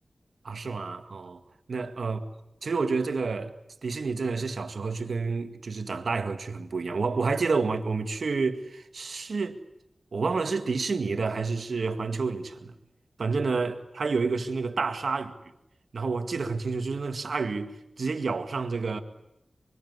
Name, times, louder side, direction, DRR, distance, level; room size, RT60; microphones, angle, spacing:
voice 1, 0.4-1.4 1.7-2.2 2.6-3.5 3.8-9.6 10.1-12.8 13.2-15.4 15.9-19.0, right 4 dB, 75° right, 2.0 m, -29 dB
24.5 x 24.0 x 9.6 m
wide cardioid pair, 60°, 0 cm